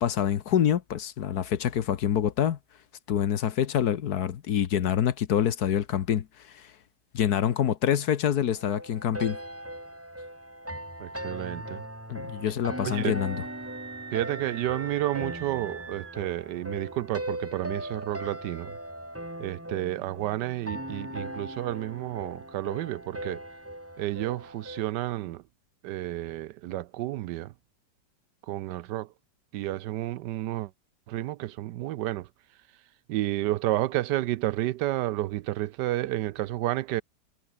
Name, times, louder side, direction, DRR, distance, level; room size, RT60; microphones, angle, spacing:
voice 1, 0.0-2.6 3.1-6.3 6.5-6.7 7.1-9.4 12.1-13.4, left 9 dB, 65° left, 1.5 m, -26 dB
sound 1, 8.5-24.9, right 1 dB, 5° right, 3.2 m, -39 dB
voice 2, 11.0-11.8 12.8-13.1 14.1-18.8 19.4-23.4 24.0-25.4 25.8-27.5 28.5-29.1 29.5-30.7 31.1-32.3 33.1-37.0, right 15 dB, 75° right, 1.2 m, -31 dB
Screaming, 12.9-16.3, right 6 dB, 40° right, 1.4 m, -43 dB
omnidirectional pair, 1.9 m